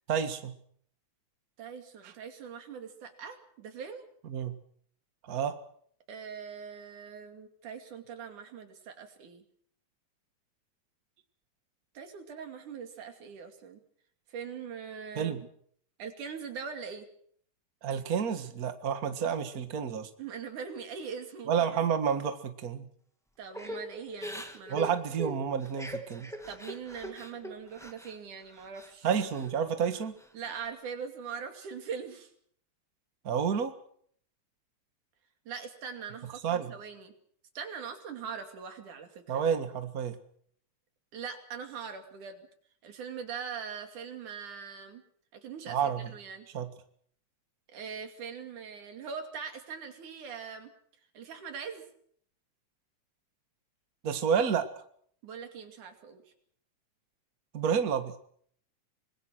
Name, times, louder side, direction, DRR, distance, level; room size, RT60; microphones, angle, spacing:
voice 1, 0.1-0.5 2.0-2.1 4.3-4.5 5.2-5.5 15.1-15.4 17.8-20.1 21.5-22.9 24.7-26.3 29.0-30.1 33.2-33.7 36.4-36.7 39.3-40.2 45.7-46.1 46.5-46.7 54.0-54.7 57.5-58.1, right 7 dB, 35° right, 9 dB, 1.7 m, -30 dB
voice 2, 1.6-4.1 6.1-9.4 11.9-13.8 14.3-15.4 16.0-17.1 20.2-21.7 23.4-24.9 26.5-29.1 30.3-32.3 35.5-37.1 37.6-39.4 41.1-42.5 42.8-45.0 45.3-46.5 47.7-50.7 51.1-51.9 55.2-56.2, right 6 dB, 85° right, 6 dB, 4.1 m, -42 dB
Crying sobbing / Breathing, 23.5-28.2 28.5-29.5 29.9-30.7, equal, ahead, 1.3 m, -42 dB
25.5 x 20.5 x 6.3 m, 0.62 s
omnidirectional pair, 3.4 m